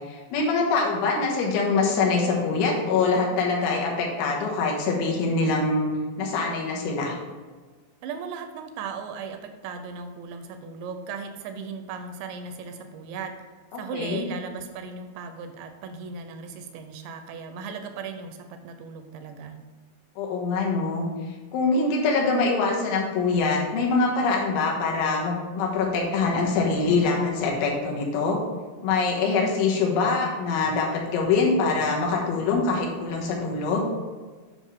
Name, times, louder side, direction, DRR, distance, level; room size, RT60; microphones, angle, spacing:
voice 1, 0.1-5.9 6.2-7.2 13.7-14.3 20.2-21.1 21.5-28.4 28.8-33.9, left 4 dB, 90° left, -1 dB, 3.7 m, -24 dB
voice 2, 8.0-13.3 13.7-19.6, right 5 dB, 80° right, 7 dB, 2.7 m, -37 dB
9.1 x 5.6 x 3.6 m, 1.4 s
omnidirectional pair, 5.3 m